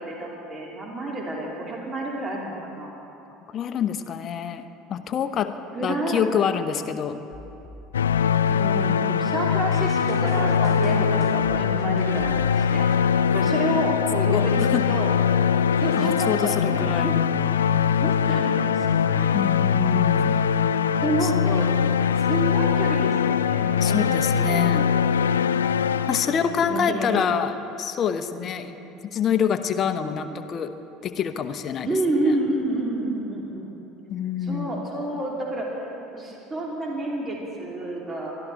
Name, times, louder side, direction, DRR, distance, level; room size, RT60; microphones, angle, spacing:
voice 1, 0.0-2.9 5.7-6.2 8.5-15.1 15.8-17.2 18.0-19.4 21.0-21.7 22.3-24.2 24.5-24.8 25.9-27.3 28.3-28.7 30.0-30.4 31.8-33.7 34.4-35.8 36.1-38.3, right 2 dB, 30° right, -2 dB, 3.0 m, -29 dB
voice 2, 3.5-4.6 4.9-5.5 5.8-7.2 14.2-14.8 16.0-17.1 19.3-20.3 21.2-21.3 23.8-24.9 26.1-28.7 29.1-30.7 31.0-31.9 34.1-34.9, left 8 dB, 40° left, 9 dB, 0.9 m, -26 dB
sound 1, 7.3-9.2 9.9-13.0, left 1 dB, ahead, 2.4 m, -46 dB
sound 2, 7.9-26.8, left 7 dB, 80° left, 0.3 m, -22 dB
22.5 x 13.0 x 4.1 m, 2.9 s
figure-of-eight pair, 70°, 0 cm